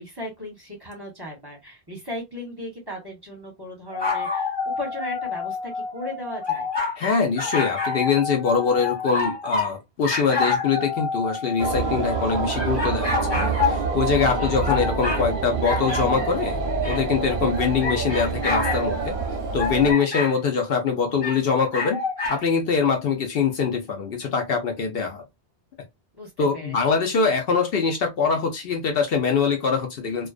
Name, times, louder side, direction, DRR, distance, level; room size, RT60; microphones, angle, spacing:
voice 1, 0.0-6.7 14.4-14.8 26.2-26.8, left 1 dB, 25° right, 0.8 m, -37 dB
sound 1, 3.9-9.7 10.0-15.3 15.6-20.3 21.2-22.4, left 4 dB, 25° left, 1.2 m, -28 dB
voice 2, 7.0-16.6 16.8-19.1 19.5-22.0 22.3-25.2 26.4-30.3, left 5 dB, 65° left, 0.8 m, -23 dB
sound 2, 11.6-19.9, right 5 dB, 60° right, 0.7 m, -27 dB
2.3 x 2.3 x 2.3 m
omnidirectional pair, 1.1 m